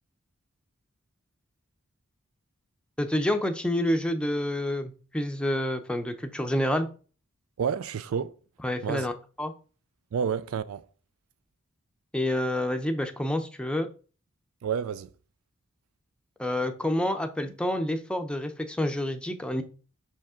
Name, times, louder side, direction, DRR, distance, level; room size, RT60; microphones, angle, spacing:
voice 1, 3.0-6.9 8.6-9.1 9.4-9.5 12.1-13.9 16.4-19.6, left 1 dB, 5° left, 0.6 m, -28 dB
voice 2, 7.6-8.3 8.8-9.1 10.1-10.9 14.6-15.1, right 7 dB, 75° right, 0.4 m, -29 dB
5.8 x 5.2 x 3.6 m
head